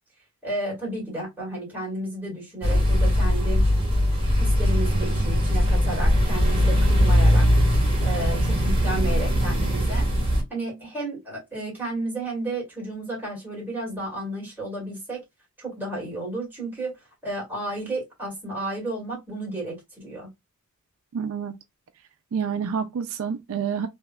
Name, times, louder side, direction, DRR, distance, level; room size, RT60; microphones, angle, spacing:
voice 1, 0.4-3.6 4.4-7.5 8.0-10.1 10.5-15.2 15.6-16.9 17.2-20.3, right 1 dB, 10° right, 2.0 m, -32 dB
sound 1, 2.6-10.4, equal, 25° right, 1.6 m, -20 dB
voice 2, 21.1-21.5 22.3-23.9, right 7 dB, 65° right, 0.4 m, -28 dB
3.4 x 2.8 x 2.3 m
head